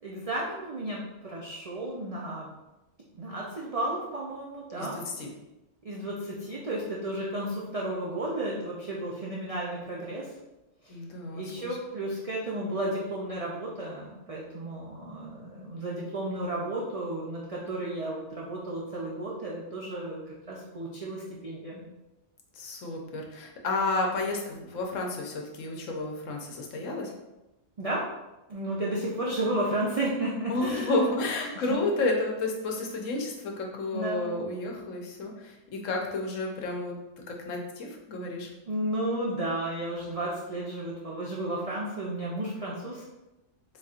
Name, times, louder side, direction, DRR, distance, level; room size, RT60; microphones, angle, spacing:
voice 1, 0.0-2.5 3.2-5.0 5.8-10.3 10.8-11.0 11.3-21.9 27.8-28.0 28.5-30.9 31.6-31.7 33.9-34.4 38.7-43.0, right 1 dB, 40° right, -5 dB, 0.5 m, -33 dB
voice 2, 4.8-5.3 10.9-11.7 22.5-27.1 30.5-36.9 37.3-38.5, left 2 dB, 80° left, 1 dB, 1.2 m, -31 dB
4.2 x 4.0 x 2.4 m, 1.0 s
omnidirectional pair, 1.3 m